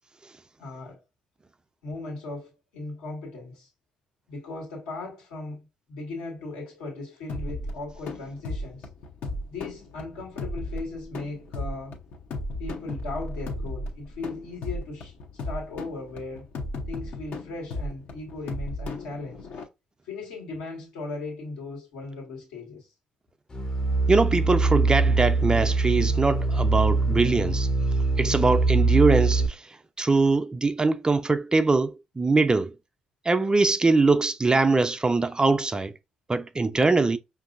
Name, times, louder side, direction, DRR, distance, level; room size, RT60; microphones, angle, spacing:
voice 1, 0.6-1.0 1.8-3.7 4.3-8.9 9.5-12.0 12.6-15.1 15.4-16.5 16.9-19.5 20.0-22.9, left 3 dB, 80° left, 1.5 m, -37 dB
sound 1, 7.3-19.6, left 2 dB, 65° left, 0.8 m, -35 dB
sound 2, 23.5-29.5, right 3 dB, 25° left, 0.7 m, -23 dB
voice 2, 24.1-27.7 28.2-29.6 30.0-32.7 33.3-35.9 36.3-37.2, right 3 dB, 25° right, 0.4 m, -22 dB
5.3 x 2.6 x 2.4 m
hypercardioid pair, 45°, 3 cm